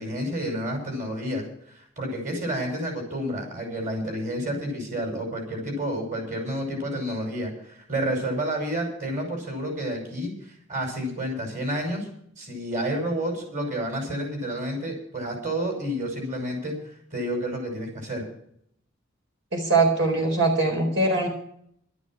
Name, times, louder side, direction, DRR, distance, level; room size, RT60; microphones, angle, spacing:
voice 1, 0.0-1.4 1.7-10.3 10.7-12.1 12.4-16.7 17.1-18.2, equal, 40° right, 2 dB, 5.9 m, -30 dB
voice 2, 19.5-21.3, right 3 dB, 80° right, 2 dB, 4.4 m, -22 dB
13.0 x 13.0 x 6.2 m, 0.66 s
head